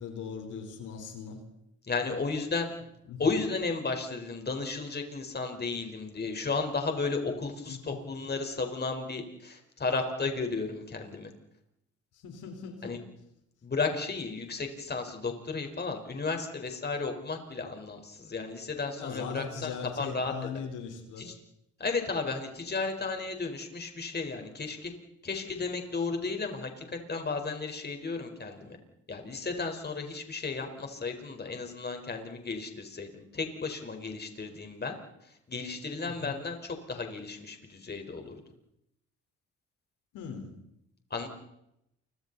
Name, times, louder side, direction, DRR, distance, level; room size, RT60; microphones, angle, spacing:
voice 1, 0.0-1.4 3.1-3.3 7.7-8.0 12.2-13.0 19.0-21.3 36.0-36.4 40.1-40.5, left 6 dB, 85° left, 4 dB, 4.2 m, -39 dB
voice 2, 1.9-2.7 3.2-11.3 12.8-13.0 13.6-20.3 21.2-21.3 21.8-24.9 25.2-28.8 29.1-35.0 35.5-38.4 41.1-41.3, left 4 dB, 35° left, 4 dB, 4.5 m, -34 dB
29.5 x 24.5 x 4.1 m, 0.80 s
cardioid pair, 90°, 30 cm